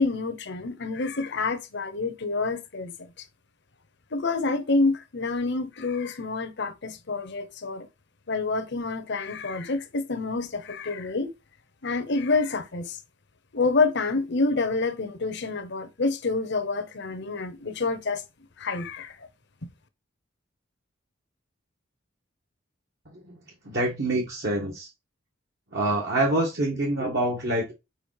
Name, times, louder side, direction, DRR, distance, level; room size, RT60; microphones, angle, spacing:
voice 1, 0.0-3.1 4.1-7.9 8.3-11.3 11.8-13.0 13.5-18.2 18.6-19.2, left 3 dB, 60° left, 0.9 m, -27 dB
voice 2, 23.6-24.9 25.7-27.7, right 1 dB, 55° right, 1.5 m, -26 dB
5.1 x 4.9 x 4.8 m
head